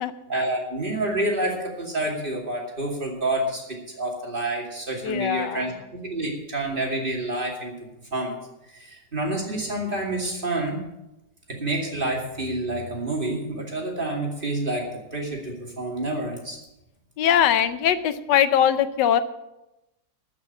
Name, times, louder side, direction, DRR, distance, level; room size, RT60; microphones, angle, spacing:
voice 1, 0.3-7.7 8.1-8.3 8.7-10.8 11.5-16.6, right 1 dB, 30° right, 0 dB, 2.7 m, -28 dB
voice 2, 5.0-5.7 17.2-19.2, left 10 dB, 85° left, 12 dB, 1.4 m, -21 dB
13.0 x 6.2 x 8.6 m, 0.93 s
omnidirectional pair, 1.8 m